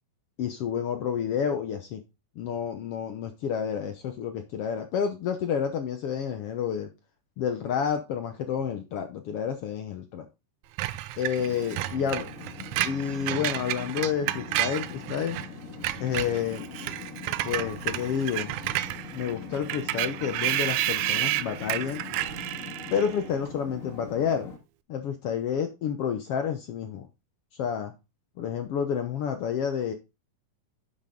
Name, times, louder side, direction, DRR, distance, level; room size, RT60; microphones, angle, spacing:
voice 1, 0.4-2.0 2.4-6.9 7.4-10.3 11.2-12.3 12.8-15.4 16.0-16.6 17.4-18.5 19.1-22.0 22.9-24.5 24.9-27.1 27.5-27.9 28.4-29.9, left 7 dB, 70° left, 7 dB, 1.4 m, -29 dB
Screech, 10.8-15.5 15.7-23.2, right 15 dB, 80° right, 1.9 m, -31 dB
sound 1, 11.4-24.6, left 4 dB, 30° left, 1.9 m, -42 dB
10.0 x 6.4 x 3.7 m, 0.26 s
omnidirectional pair, 3.8 m